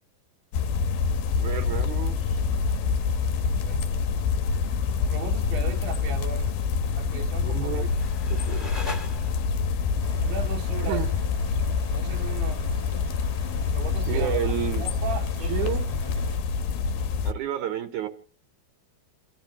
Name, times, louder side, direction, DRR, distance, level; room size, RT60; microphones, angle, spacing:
sound 1, 0.5-17.3, left 5 dB, 75° left, 2.4 m, -26 dB
voice 1, 1.4-2.4 6.9-7.1 7.4-7.8 8.5-8.7 10.8-11.1 14.1-14.8 15.5-15.9 17.2-18.1, right 11 dB, 65° right, 2.1 m, -30 dB
voice 2, 5.1-6.5 7.0-7.9 10.2-11.1 11.9-12.6 13.7-14.4 14.8-16.0, right 8 dB, 85° right, 3.0 m, -37 dB
sound 2, 7.4-9.7, left 2 dB, 10° left, 1.1 m, -40 dB
sound 3, 10.0-16.4, left 1 dB, 35° left, 0.5 m, -44 dB
29.5 x 13.0 x 2.8 m
omnidirectional pair, 4.6 m